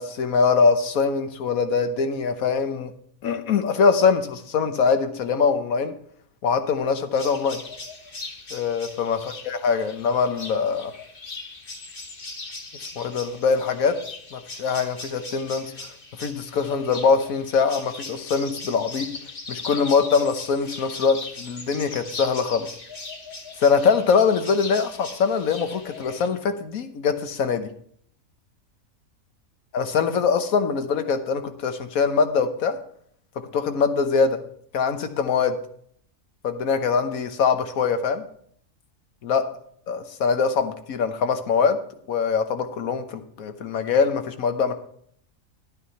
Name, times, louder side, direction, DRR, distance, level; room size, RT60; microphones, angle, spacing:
voice 1, 0.0-2.9 3.2-5.9 6.4-7.6 8.5-9.2 9.5-10.9 12.9-14.0 14.3-15.7 16.2-19.1 19.5-22.7 23.6-27.7 29.7-32.8 33.4-34.4 34.7-35.6 36.4-38.2 39.2-39.4 39.9-41.8 42.1-44.7, left 5 dB, 85° left, 8 dB, 1.4 m, -23 dB
sound 1, 7.1-26.3, left 3 dB, 40° left, 1.5 m, -39 dB
11.0 x 9.3 x 4.3 m, 0.63 s
omnidirectional pair, 1.5 m